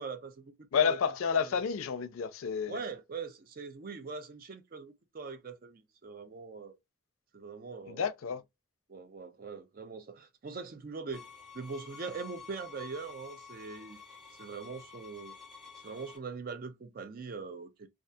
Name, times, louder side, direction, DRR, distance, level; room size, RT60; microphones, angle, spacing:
voice 1, 0.0-1.0 2.7-6.8 7.3-8.1 8.9-11.3 11.5-14.0 14.4-15.3 15.8-17.9, right 4 dB, 45° right, 0.4 m, -42 dB
voice 2, 0.7-2.8 7.9-8.4, left 6 dB, 90° left, 0.4 m, -30 dB
sound 1, 11.1-16.2, left 5 dB, ahead, 0.9 m, -50 dB
2.6 x 2.3 x 2.2 m
head